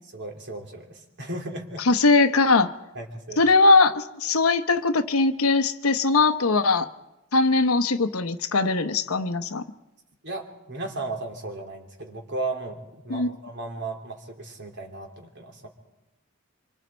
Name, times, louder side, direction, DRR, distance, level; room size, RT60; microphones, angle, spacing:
voice 1, 0.1-1.8 2.9-3.4 10.2-15.7, right 2 dB, 55° right, 2 dB, 3.1 m, -35 dB
voice 2, 1.9-2.7 3.4-6.9 7.3-9.6 13.1-13.4, left 3 dB, 90° left, 9 dB, 1.0 m, -20 dB
26.0 x 25.0 x 4.5 m, 0.98 s
head